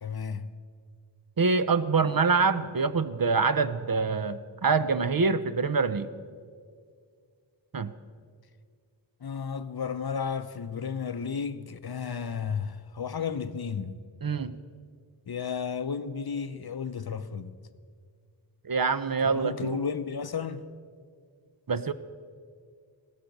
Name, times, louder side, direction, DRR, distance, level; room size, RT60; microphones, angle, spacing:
voice 1, 0.0-0.5 9.2-13.9 15.3-17.5 19.2-20.6, left 6 dB, 55° left, 0.7 m, -33 dB
voice 2, 1.4-6.1 7.7-7.9 14.2-14.5 18.6-19.8 21.7-21.9, right 4 dB, 50° right, 0.6 m, -25 dB
16.0 x 13.5 x 5.3 m
wide cardioid pair, 55°, 47 cm